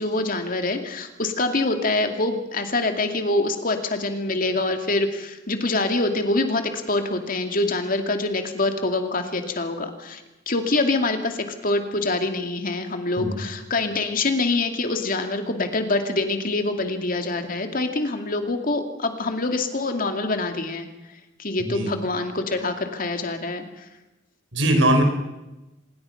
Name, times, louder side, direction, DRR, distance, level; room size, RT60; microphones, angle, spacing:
voice 1, 0.0-23.9, left 2 dB, 50° left, 6 dB, 2.5 m, -25 dB
voice 2, 21.6-21.9 24.5-25.0, right 1 dB, 85° right, 5 dB, 5.1 m, -20 dB
26.5 x 21.0 x 5.9 m, 1.0 s
head